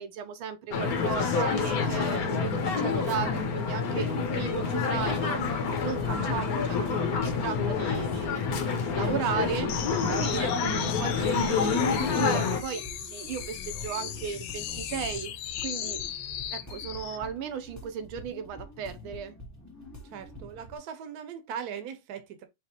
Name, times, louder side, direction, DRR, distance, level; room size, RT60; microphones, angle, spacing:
voice 1, 0.0-16.0 16.5-19.4, right 7 dB, 85° right, 1.5 m, -36 dB
sound 1, 0.7-12.6, left 5 dB, 55° left, 1.1 m, -28 dB
sound 2, 4.9-20.8, equal, 20° left, 0.4 m, -45 dB
sound 3, 9.7-17.2, left 11 dB, 90° left, 1.5 m, -37 dB
voice 2, 20.1-22.5, right 8 dB, 60° right, 1.2 m, -39 dB
5.0 x 3.0 x 2.9 m
omnidirectional pair, 2.2 m